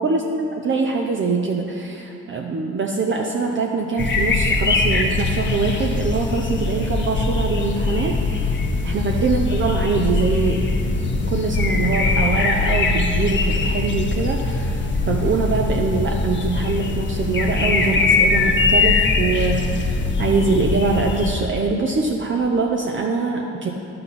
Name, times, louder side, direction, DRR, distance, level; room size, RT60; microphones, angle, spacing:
voice 1, 0.0-8.5 8.8-10.7 11.1-23.7, right 4 dB, 40° right, 1 dB, 0.7 m, -23 dB
sound 1, 4.0-21.3, left 3 dB, 40° left, 1.0 m, -21 dB
11.0 x 7.7 x 4.2 m, 2.7 s
cardioid pair, 90°, 30 cm